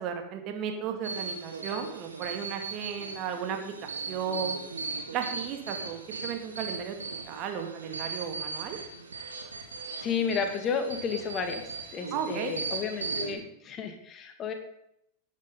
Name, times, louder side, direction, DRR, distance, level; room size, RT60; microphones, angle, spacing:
voice 1, 0.0-4.6 5.1-7.0 7.3-8.8 12.1-12.5, right 7 dB, 40° right, 4 dB, 2.2 m, -35 dB
sound 1, 1.0-13.4, right 4 dB, 75° right, 2.1 m, -38 dB
voice 2, 10.0-14.5, left 6 dB, 30° left, 5 dB, 2.1 m, -32 dB
18.0 x 9.7 x 3.9 m, 0.76 s
figure-of-eight pair, 90°, 0 cm